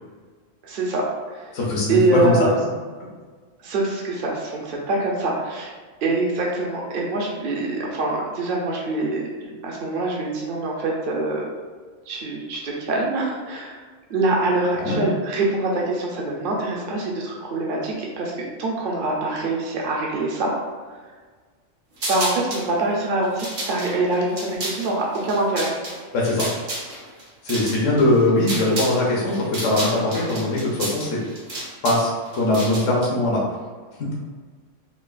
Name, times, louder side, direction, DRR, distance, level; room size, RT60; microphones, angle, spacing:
voice 1, 0.6-1.5 1.9-2.7 3.6-5.7 6.0-11.4 12.1-13.8 14.1-20.5 22.1-25.7, right 2 dB, 50° right, -2 dB, 0.8 m, -24 dB
voice 2, 1.5-2.4 14.8-15.1 26.1-26.5 27.4-31.2 31.8-33.4 34.0-34.1, left 1 dB, 80° left, -4 dB, 1.3 m, -21 dB
sound 1, 22.0-22.7 23.2-29.0 29.3-33.1, right 1 dB, 70° right, 1.4 m, -31 dB
6.0 x 2.3 x 2.5 m, 1.5 s
omnidirectional pair, 1.3 m